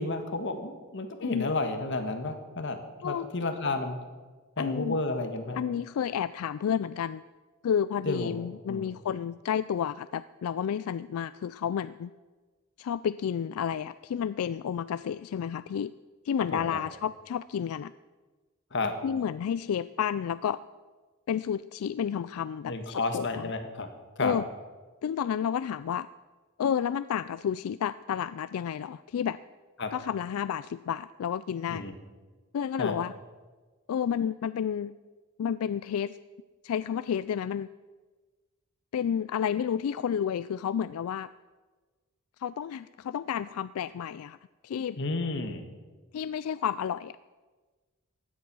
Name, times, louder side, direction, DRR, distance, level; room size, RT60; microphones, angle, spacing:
voice 1, 0.0-4.0 4.6-5.6 8.0-8.3 8.7-8.8 16.5-16.8 18.7-19.0 22.7-23.9 24.2-24.4 29.8-29.9 31.7-31.9 32.8-33.0 45.0-45.6, left 2 dB, 55° left, 7 dB, 1.6 m, -31 dB
voice 2, 1.2-1.5 3.0-3.3 4.6-5.0 5.5-7.2 7.6-12.1 12.8-15.9 16.2-17.9 19.0-20.6 21.3-23.5 24.2-24.4 25.0-26.1 26.6-29.4 29.9-31.8 32.5-33.1 33.9-34.9 35.4-36.2 36.6-37.7 38.9-41.3 42.4-44.4 44.6-45.0 46.1-47.2, left 8 dB, 85° left, 16 dB, 0.3 m, -31 dB
16.0 x 10.0 x 6.1 m, 1.3 s
head